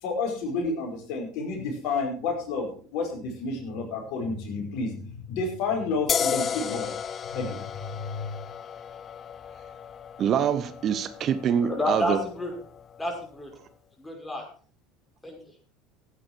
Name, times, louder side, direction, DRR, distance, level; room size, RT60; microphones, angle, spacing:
voice 1, 0.0-6.9 7.3-7.6 7.9-8.4, left 3 dB, 60° left, 2 dB, 5.2 m, -30 dB
sound 1, 6.1-13.4, left 7 dB, 35° left, 0.6 m, -34 dB
voice 2, 10.2-12.2, right 8 dB, 45° right, 12 dB, 1.2 m, -25 dB
voice 3, 11.6-12.5 13.0-13.5 14.0-14.4 15.2-15.4, left 1 dB, 10° left, 1 dB, 5.9 m, -29 dB
15.5 x 9.3 x 4.6 m, 0.43 s
hypercardioid pair, 70°, 0 cm